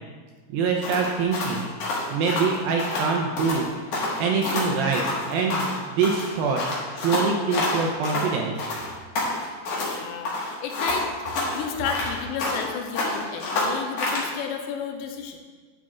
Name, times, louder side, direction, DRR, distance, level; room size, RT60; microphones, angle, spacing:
voice 1, 0.5-1.7 2.1-3.7 4.2-6.6 6.9-8.5, right 5 dB, 85° right, 0 dB, 2.2 m, -24 dB
sound 1, 0.8-3.1 3.4-3.6 3.9-5.8 6.0-8.3 8.6-10.0 10.3-12.7 13.0-14.3, left 2 dB, 55° left, 2.6 m, -28 dB
voice 2, 9.8-15.4, left 7 dB, 80° left, 4 dB, 2.6 m, -33 dB
11.5 x 7.4 x 2.4 m, 1.5 s
omnidirectional pair, 4.8 m